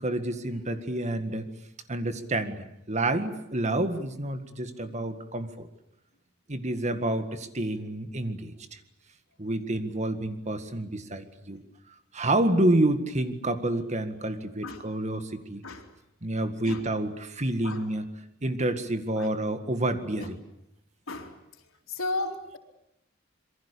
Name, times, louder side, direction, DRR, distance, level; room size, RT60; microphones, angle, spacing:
voice 1, 0.0-1.5 1.9-5.7 6.5-8.8 9.4-11.6 12.1-15.6 16.2-18.1 18.4-20.4, right 1 dB, 35° right, 9 dB, 1.9 m, -29 dB
voice 2, 21.9-22.6, left 2 dB, 90° left, 3 dB, 4.0 m, -34 dB
27.0 x 23.0 x 8.5 m, 0.82 s
head